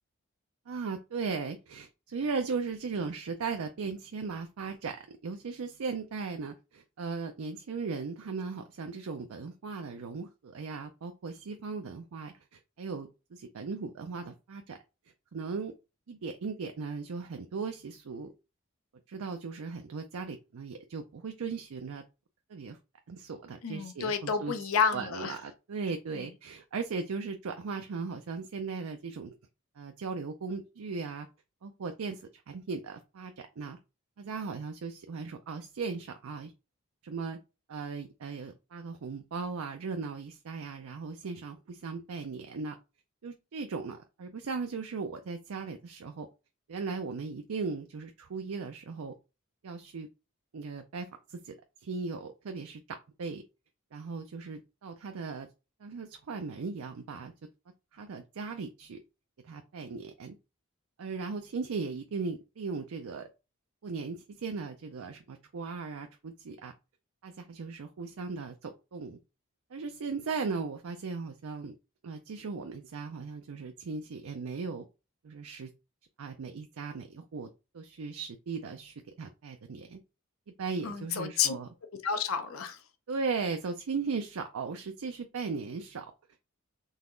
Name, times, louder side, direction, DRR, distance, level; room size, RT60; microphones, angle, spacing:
voice 1, 0.7-14.8 15.3-15.7 16.1-18.3 19.1-22.0 22.5-22.8 23.1-24.5 24.9-29.4 29.8-31.3 31.6-33.8 34.2-36.5 37.0-37.4 37.7-42.8 43.2-46.3 46.7-49.1 49.6-50.1 50.5-53.4 53.9-55.5 55.8-57.3 57.9-59.0 59.4-60.4 61.0-63.3 63.8-66.7 67.2-69.2 69.7-71.8 72.0-74.9 75.2-75.7 76.2-77.5 77.7-80.0 80.6-81.7 83.1-86.1, right 4 dB, 85° right, 0.5 m, -37 dB
voice 2, 23.6-25.3 80.8-81.5 82.0-82.8, left 6 dB, 75° left, 0.6 m, -30 dB
4.0 x 2.8 x 3.7 m
head